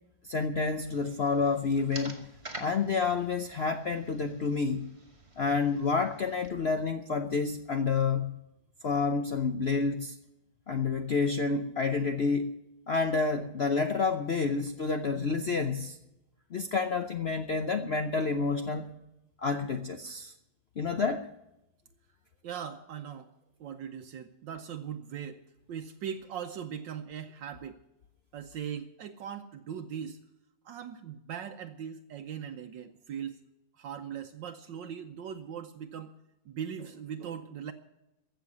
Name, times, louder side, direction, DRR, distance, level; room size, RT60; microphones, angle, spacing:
voice 1, 0.2-2.2 2.6-4.9 5.4-8.4 8.8-10.1 10.7-12.5 12.9-16.0 16.5-18.9 19.4-20.3 20.8-21.3, left 4 dB, 65° left, 7 dB, 0.6 m, -29 dB
sound 1, 0.8-6.5, right 2 dB, 15° right, 1.6 m, -48 dB
voice 2, 22.4-23.3 23.6-25.4 25.7-27.8 28.3-30.2 30.6-33.4 33.8-36.1 36.4-37.7, right 8 dB, 75° right, 6 dB, 1.5 m, -40 dB
15.0 x 6.8 x 9.6 m, 0.90 s
omnidirectional pair, 2.0 m